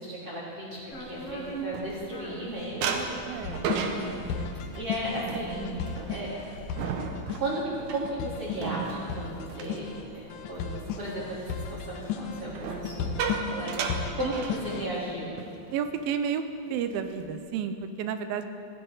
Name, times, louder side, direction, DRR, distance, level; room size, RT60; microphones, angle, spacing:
voice 1, 0.0-3.1 3.6-4.2 4.8-5.8 6.1-6.4 7.4-15.3, right 1 dB, 25° right, -7 dB, 3.6 m, -35 dB
sound 1, 0.9-15.1, right 1 dB, 45° left, 3.1 m, -46 dB
sound 2, 0.9-2.4 2.8-10.6 11.0-11.3 12.5-15.1 15.4-15.6 15.9-16.2 16.7-17.3, right 5 dB, 70° right, 1.9 m, -35 dB
voice 2, 3.3-3.8 12.7-12.8 14.2-14.3 15.3-15.4 15.7-16.4 16.7-18.4, right 7 dB, 85° right, 9 dB, 2.5 m, -31 dB
sound 3, 3.4-15.0, left 6 dB, 75° left, 2.0 m, -36 dB
16.5 x 14.5 x 4.0 m, 2.4 s
omnidirectional pair, 4.3 m